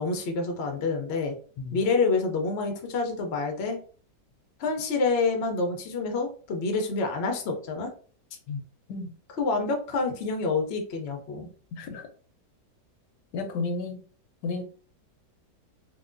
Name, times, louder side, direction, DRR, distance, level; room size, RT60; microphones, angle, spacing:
voice 1, 0.0-1.4 1.7-3.8 4.6-7.9 9.4-11.5, left 3 dB, 60° left, 4 dB, 0.6 m, -27 dB
voice 2, 11.7-12.1 13.3-14.0 14.4-14.6, left 3 dB, 80° left, 5 dB, 1.2 m, -32 dB
3.9 x 2.2 x 2.5 m, 0.43 s
omnidirectional pair, 1.8 m